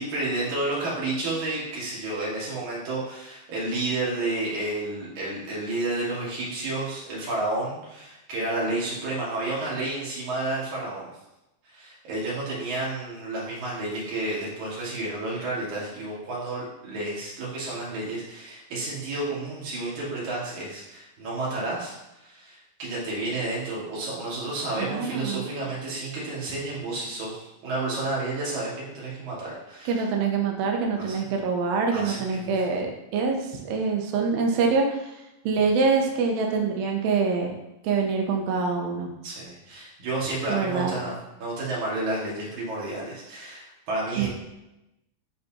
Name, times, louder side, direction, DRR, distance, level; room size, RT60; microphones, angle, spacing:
voice 1, 0.0-11.1 11.6-30.0 31.0-31.2 31.9-32.5 39.2-44.3, right 2 dB, 60° right, -6 dB, 3.1 m, -31 dB
voice 2, 24.8-25.5 29.9-35.0 35.5-37.5 37.8-39.1 40.5-41.0 44.2-44.3, right 4 dB, 85° right, 2 dB, 2.7 m, -25 dB
9.2 x 3.9 x 2.8 m, 0.94 s
omnidirectional pair, 4.2 m